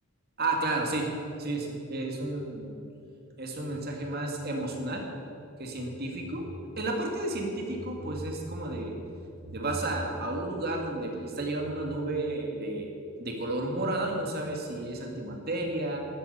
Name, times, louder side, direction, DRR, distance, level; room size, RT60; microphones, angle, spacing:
voice 1, 0.4-1.1 1.4-2.8 3.4-5.0 5.6-6.5 6.8-8.9 9.5-12.9 13.2-16.0, right 2 dB, 50° right, 1 dB, 2.2 m, -32 dB
12.5 x 9.7 x 8.3 m, 2.7 s
head